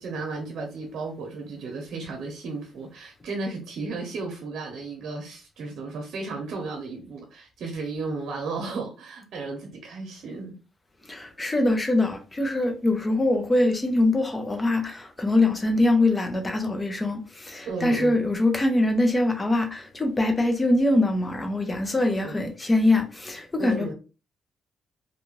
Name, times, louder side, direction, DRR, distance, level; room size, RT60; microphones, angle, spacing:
voice 1, 0.0-10.6 17.7-18.2 22.1-22.4 23.6-23.9, right 3 dB, 65° right, 0.7 m, -34 dB
voice 2, 11.1-23.9, left 2 dB, 20° left, 0.8 m, -23 dB
2.6 x 2.4 x 3.1 m
cardioid pair, 90°, 0 cm